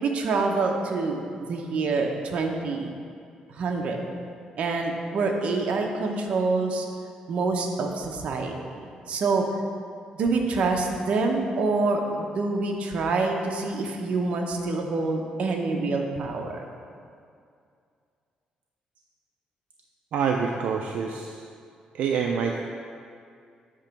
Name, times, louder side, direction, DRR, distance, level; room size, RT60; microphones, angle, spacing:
voice 1, 0.0-1.2 1.5-2.9 3.5-4.0 4.6-6.9 7.3-8.5 9.1-9.4 10.2-16.7, right 3 dB, 55° right, 2 dB, 0.8 m, -26 dB
voice 2, 20.1-21.4 21.9-22.6, right 6 dB, 75° right, 1 dB, 0.4 m, -26 dB
8.6 x 3.0 x 5.7 m, 2.3 s
cardioid pair, 140°, 2 cm